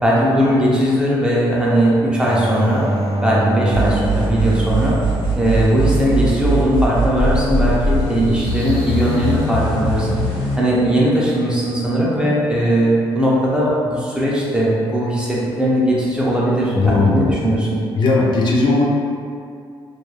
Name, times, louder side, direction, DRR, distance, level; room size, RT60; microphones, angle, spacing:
voice 1, 0.0-2.8 3.2-5.0 5.4-10.2 10.6-17.7, equal, 10° right, -6 dB, 0.4 m, -18 dB
sound 1, 2.2-6.8 10.1-10.6, right 1 dB, 65° right, 0.5 m, -26 dB
sound 2, 3.7-10.6, right 1 dB, 75° left, 0.9 m, -20 dB
sound 3, 8.0-10.8, equal, 35° right, 0.8 m, -35 dB
voice 2, 16.7-17.2 18.0-18.8, left 3 dB, 50° left, -3 dB, 0.4 m, -16 dB
2.3 x 2.2 x 3.1 m, 2.3 s
cardioid pair, 155°, 10 cm